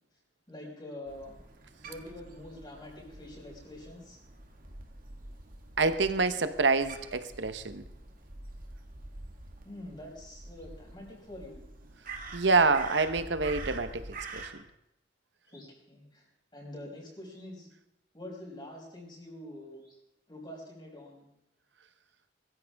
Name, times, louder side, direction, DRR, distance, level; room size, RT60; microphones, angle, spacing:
voice 1, 0.5-1.4 1.8-4.2 9.6-11.6 15.5-16.3 16.5-17.7 18.1-20.0 20.3-21.3, left 1 dB, 25° left, -2 dB, 5.4 m, -45 dB
Crow, 1.1-14.5, right 3 dB, 50° right, 2.0 m, -46 dB
voice 2, 5.8-7.8 12.3-14.1 14.3-14.4, right 4 dB, 75° right, 11 dB, 1.0 m, -26 dB
21.5 x 14.0 x 3.6 m, 0.82 s
head